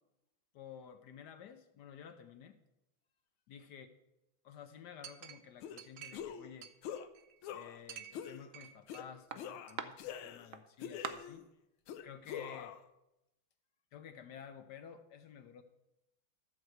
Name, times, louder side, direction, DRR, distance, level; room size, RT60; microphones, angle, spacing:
voice 1, 0.5-2.6 3.5-3.9 4.4-6.7 7.5-11.5 12.0-12.8 13.9-15.6, left 8 dB, 70° left, 9 dB, 1.1 m, -52 dB
Chink clink, 5.0-6.3 6.6-7.4 7.9-9.0 9.3-9.9 10.5-10.6 11.0-11.1, right 8 dB, 75° right, 0.7 m, -45 dB
sound 1, 5.6-5.8 6.1-6.5 6.8-7.1 7.4-7.8 8.1-8.4 8.9-9.1 9.4-10.5 10.8-11.4 11.9-12.8, left 9 dB, 85° left, 1.5 m, -44 dB
13.0 x 4.6 x 7.8 m, 0.91 s
omnidirectional pair, 2.3 m